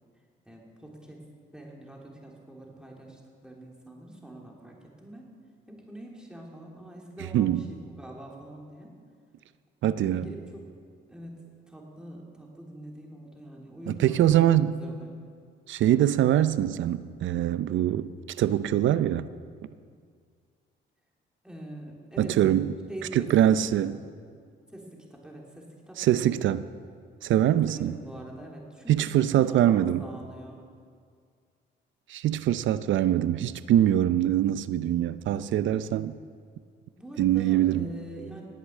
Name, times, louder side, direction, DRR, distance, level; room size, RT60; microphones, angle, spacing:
voice 1, 0.4-1.2 1.5-5.3 5.7-8.9 10.0-10.6 11.1-11.3 11.7-14.4 14.8-15.1 21.4-22.4 22.9-23.6 23.8-24.0 24.7-26.4 27.7-30.6 35.8-36.2 36.9-38.4, right 1 dB, 5° right, 3.3 m, -44 dB
voice 2, 7.3-7.7 9.8-10.3 13.9-14.8 15.7-18.1 18.4-19.3 22.2-22.7 23.1-24.0 26.0-26.7 27.2-27.9 28.9-30.1 32.1-36.1 37.2-37.9, right 11 dB, 75° right, 0.6 m, -23 dB
19.0 x 8.2 x 7.4 m
cardioid pair, 90°, 20 cm